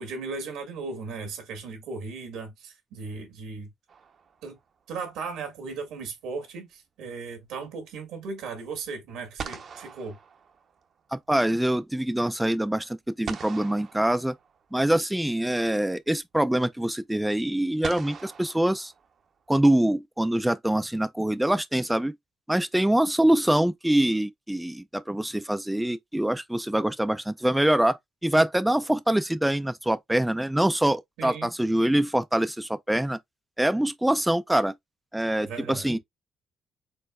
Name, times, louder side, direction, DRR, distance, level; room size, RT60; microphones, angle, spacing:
voice 1, 0.0-3.7 4.4-4.6 4.9-10.2 31.2-31.5 35.4-36.0, right 4 dB, 90° right, 1.8 m, -37 dB
sound 1, 3.9-4.8 8.8-8.9 9.4-11.1 13.3-14.8 16.2-16.3 17.8-19.5, right 6 dB, 55° right, 0.8 m, -41 dB
voice 2, 11.1-14.3 14.7-18.9 19.5-22.1 22.5-33.2 33.6-34.7 35.1-36.0, right 1 dB, 5° right, 0.4 m, -24 dB
4.5 x 3.8 x 2.3 m
cardioid pair, 90°, 0 cm